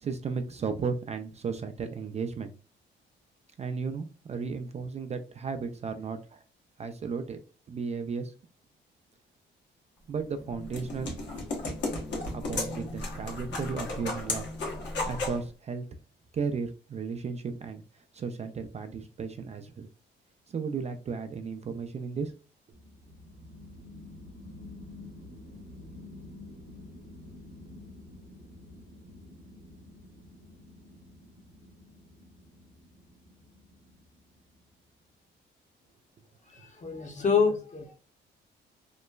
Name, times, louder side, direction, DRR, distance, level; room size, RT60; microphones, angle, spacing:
voice 1, 0.0-2.5 3.6-6.4 6.8-7.4 7.7-8.3 10.1-11.2 12.3-14.5 15.1-15.9 16.3-19.9 20.5-22.3, right 5 dB, 35° right, 7 dB, 0.4 m, -34 dB
sound 1, 10.2-15.4, left 2 dB, 65° left, 1.0 m, -34 dB
sound 2, 22.7-34.8, left 2 dB, 65° right, 0.8 m, -49 dB
voice 2, 36.5-37.9, left 5 dB, 35° left, 3 dB, 0.8 m, -27 dB
3.0 x 2.2 x 2.2 m, 0.36 s
cardioid pair, 90°, 20 cm